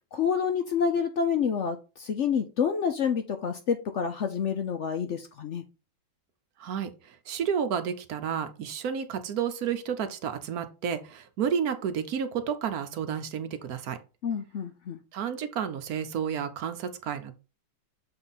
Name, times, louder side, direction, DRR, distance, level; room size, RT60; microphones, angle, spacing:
voice 1, 0.1-5.6 14.2-15.0, left 7 dB, 65° left, 7 dB, 0.7 m, -28 dB
voice 2, 6.6-6.9 7.3-14.0 15.1-17.3, right 7 dB, 65° right, 9 dB, 1.1 m, -31 dB
6.9 x 3.8 x 4.0 m, 0.31 s
omnidirectional pair, 1.9 m